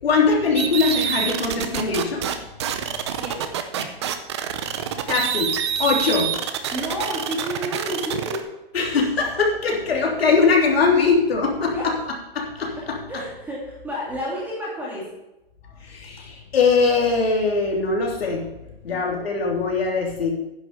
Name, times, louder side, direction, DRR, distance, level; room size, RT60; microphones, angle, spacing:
voice 1, 0.0-2.2 5.1-5.5 5.8-6.2 8.7-11.9 12.3-12.8 15.8-18.4 18.8-20.3, left 4 dB, 80° left, -1 dB, 3.4 m, -21 dB
sound 1, 0.6-2.4 2.6-8.4, right 9 dB, 30° right, 0.7 m, -26 dB
voice 2, 3.2-3.5 3.7-3.9 5.9-6.2 6.7-8.4 9.2-9.3 9.9-10.1 11.7-12.1 12.7-15.1 18.9-19.1, equal, 5° right, -6 dB, 2.8 m, -31 dB
10.0 x 6.7 x 7.1 m, 0.94 s
hypercardioid pair, 165°, 30 cm